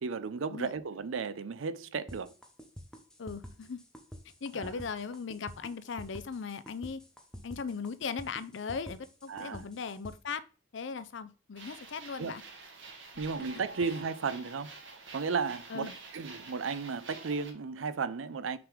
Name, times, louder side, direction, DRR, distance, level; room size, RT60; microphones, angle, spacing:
voice 1, 0.0-2.3 4.5-4.7 9.3-9.6 12.2-12.4 13.2-14.7 15.1-18.6, right 5 dB, 85° right, 0.5 m, -34 dB
sound 1, 2.1-10.1, equal, 5° left, 0.9 m, -47 dB
voice 2, 3.2-3.8 4.4-7.0 7.4-10.4 10.7-12.4 13.4-13.5 15.7-16.0, left 5 dB, 65° left, 0.5 m, -38 dB
sound 2, 11.6-17.5, right 3 dB, 70° right, 1.3 m, -48 dB
5.9 x 3.7 x 4.9 m
head